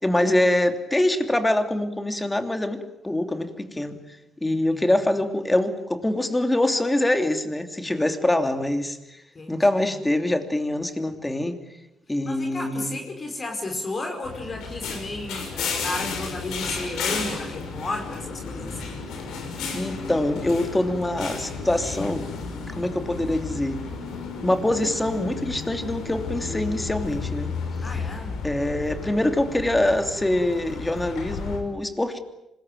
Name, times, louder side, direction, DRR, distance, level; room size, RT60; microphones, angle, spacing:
voice 1, 0.0-3.9 4.4-9.0 9.5-11.6 12.1-13.0 19.7-22.3 22.7-23.8 24.4-27.5 28.4-32.2, left 1 dB, 10° left, 7 dB, 3.0 m, -24 dB
voice 2, 4.5-4.8 9.3-9.6 12.2-19.0 27.8-28.4, left 2 dB, 35° left, 3 dB, 4.9 m, -33 dB
sound 1, 14.2-31.6, left 5 dB, 85° left, 6.2 m, -33 dB
26.0 x 21.0 x 9.2 m, 0.90 s
cardioid pair, 90°, 0 cm